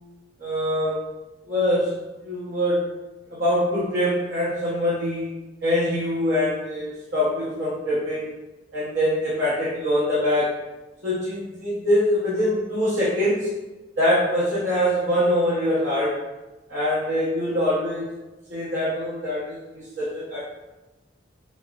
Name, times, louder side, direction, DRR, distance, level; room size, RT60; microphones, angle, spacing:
voice 1, 0.4-1.0 1.5-2.0 2.2-2.9 3.3-5.4 5.6-8.3 8.7-10.6 11.0-13.5 14.0-16.2 16.7-18.1 18.5-20.4, left 1 dB, 75° right, -9 dB, 0.9 m, -24 dB
5.2 x 2.1 x 2.4 m, 1.1 s
head